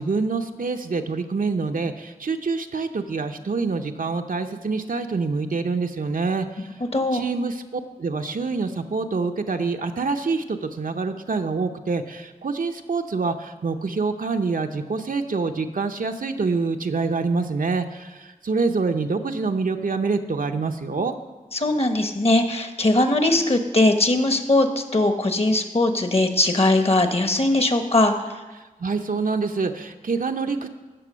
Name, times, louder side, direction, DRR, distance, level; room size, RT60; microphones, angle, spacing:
voice 1, 0.0-6.7 7.1-21.1 28.8-30.7, right 4 dB, 80° right, 5 dB, 0.8 m, -26 dB
voice 2, 6.9-7.2 21.5-28.1, left 2 dB, 45° left, 7 dB, 1.2 m, -20 dB
14.5 x 6.1 x 6.2 m, 1.2 s
wide cardioid pair, 60°, 14 cm